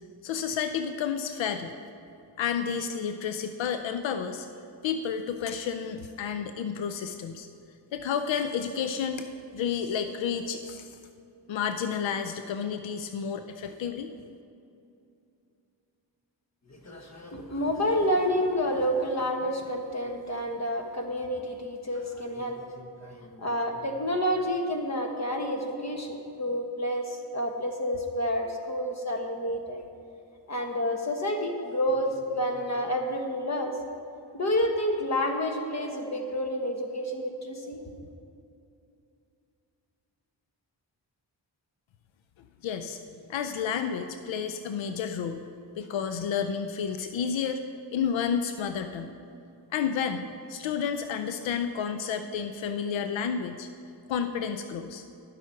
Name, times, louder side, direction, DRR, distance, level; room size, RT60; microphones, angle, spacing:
voice 1, 0.2-1.7 2.4-4.5 4.8-7.5 7.9-10.9 11.5-14.1 42.6-43.0 43.3-45.4 45.8-47.6 47.9-49.1 49.7-53.7 54.1-55.0, left 7 dB, 85° left, 8 dB, 0.6 m, -31 dB
voice 2, 16.7-29.8 30.5-33.7 34.3-37.8, equal, 35° left, 3 dB, 1.3 m, -29 dB
11.0 x 7.4 x 4.5 m, 2.6 s
cardioid pair, 70°, 44 cm